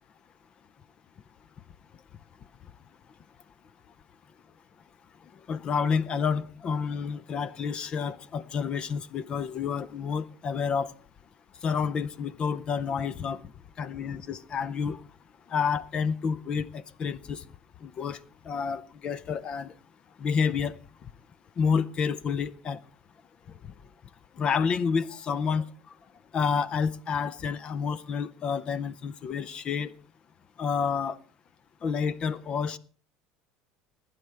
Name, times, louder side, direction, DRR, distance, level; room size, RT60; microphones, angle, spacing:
voice 1, 5.5-10.9 11.6-13.4 13.8-15.0 15.5-17.4 17.8-18.2 18.5-19.7 20.2-20.8 21.6-22.8 24.4-25.7 26.3-29.9 30.6-31.2 31.8-32.8, left 6 dB, 40° left, 0.6 m, -29 dB
20.0 x 9.4 x 3.4 m
supercardioid pair, 105°, 3 cm